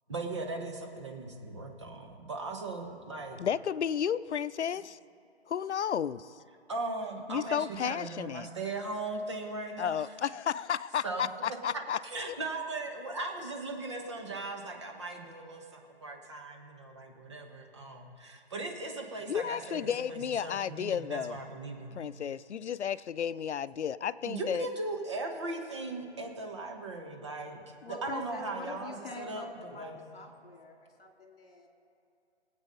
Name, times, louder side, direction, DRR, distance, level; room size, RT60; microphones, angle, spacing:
voice 1, 0.1-3.4 6.7-10.0 11.0-22.0 24.2-30.0, right 2 dB, 25° right, 2 dB, 1.2 m, -38 dB
voice 2, 3.4-5.0 5.5-6.3 7.3-8.5 9.8-12.0 19.3-21.4 22.0-24.7, left 8 dB, 85° left, 17 dB, 0.6 m, -32 dB
voice 3, 27.8-29.9 30.1-31.7, left 3 dB, 55° left, 3 dB, 2.4 m, -44 dB
19.0 x 8.2 x 5.4 m, 2.7 s
hypercardioid pair, 175°, 33 cm